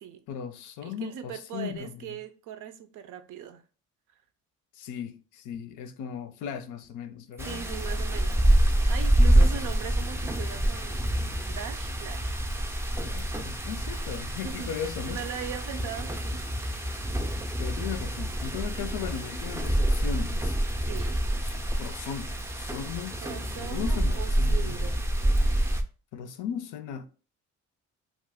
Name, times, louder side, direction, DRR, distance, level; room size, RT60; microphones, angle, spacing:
voice 1, 0.3-2.1 4.7-7.6 9.2-9.6 13.0-15.2 17.6-20.6 21.4-24.9 26.1-27.1, left 8 dB, 85° left, 0.5 m, -37 dB
voice 2, 0.8-3.6 7.4-8.5 8.9-11.1 11.4-12.4 14.4-14.7 15.0-16.8 20.9-21.2 23.2-25.2, right 9 dB, 80° right, 0.5 m, -40 dB
sound 1, 7.4-25.8, right 1 dB, 10° right, 0.4 m, -27 dB
2.5 x 2.4 x 3.4 m
cardioid pair, 90°, 30 cm